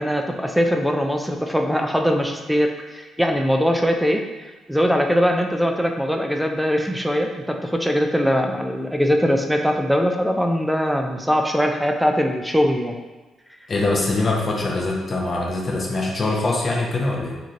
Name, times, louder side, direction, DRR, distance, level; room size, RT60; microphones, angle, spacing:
voice 1, 0.0-12.9, equal, ahead, 3 dB, 0.3 m, -21 dB
voice 2, 13.7-17.4, left 2 dB, 40° left, -1 dB, 0.6 m, -23 dB
3.0 x 2.6 x 2.5 m, 1.2 s
cardioid pair, 90°, 0 cm